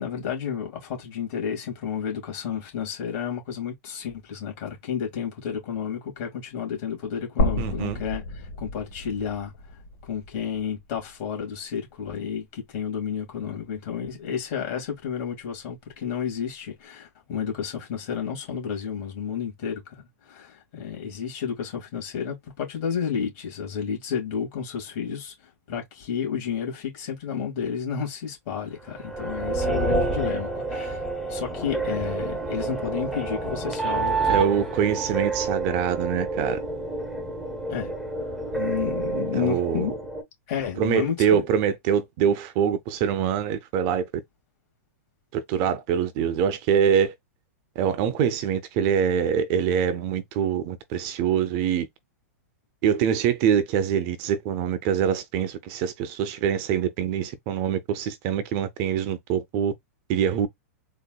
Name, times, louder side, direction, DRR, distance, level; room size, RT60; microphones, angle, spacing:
voice 1, 0.0-31.0 31.3-34.5 37.7-37.9 38.5-39.9 40.5-41.4, left 7 dB, 45° left, 2.1 m, -31 dB
sound 1, 7.4-11.5 11.9-12.0 13.4-13.5, left 1 dB, 70° left, 1.3 m, -31 dB
voice 2, 7.6-8.0 34.3-36.6 39.3-39.9 40.8-44.1 45.3-47.1 47.8-51.9 52.8-59.7 60.1-60.5, right 8 dB, 40° right, 0.5 m, -24 dB
sound 2, 28.9-40.2, right 3 dB, ahead, 0.8 m, -29 dB
4.0 x 2.5 x 2.3 m
hypercardioid pair, 140°, 8 cm